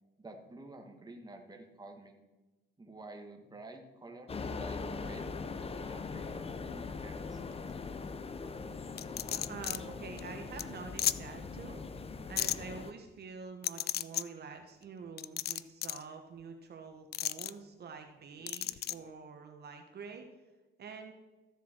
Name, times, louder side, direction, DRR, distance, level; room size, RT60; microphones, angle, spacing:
voice 1, 0.2-2.2 2.8-5.3 5.6-7.4, right 2 dB, 20° right, 3 dB, 1.6 m, -50 dB
sound 1, 4.3-12.9, left 4 dB, 30° left, 0.7 m, -41 dB
sound 2, 9.0-9.8 10.2-10.3 10.6-10.7 11.0-11.2 12.4-12.6 13.6-14.2 15.2-16.0 17.1-17.5 18.5-18.9, left 12 dB, 55° left, 0.4 m, -33 dB
voice 2, 9.3-11.8 12.3-20.2 20.8-21.1, right 5 dB, 55° right, 5 dB, 1.2 m, -47 dB
14.5 x 7.1 x 4.5 m, 1.1 s
cardioid pair, 90°, 20 cm